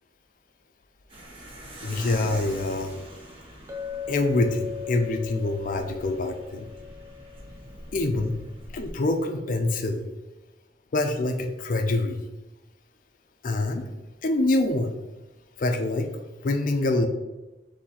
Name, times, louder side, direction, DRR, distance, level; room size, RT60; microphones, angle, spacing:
sound 1, 1.1-8.9, right 1 dB, 30° right, 1.0 m, -44 dB
voice 1, 1.8-2.9 4.1-6.7 7.9-8.4 8.7-10.0 10.9-12.2 13.4-13.8 14.2-14.9 15.6-16.1 16.4-17.1, left 2 dB, 50° left, 6 dB, 0.5 m, -25 dB
Chink clink, 3.7-7.9, left 8 dB, 15° right, 0.5 m, -38 dB
4.0 x 2.8 x 4.2 m, 1.1 s
head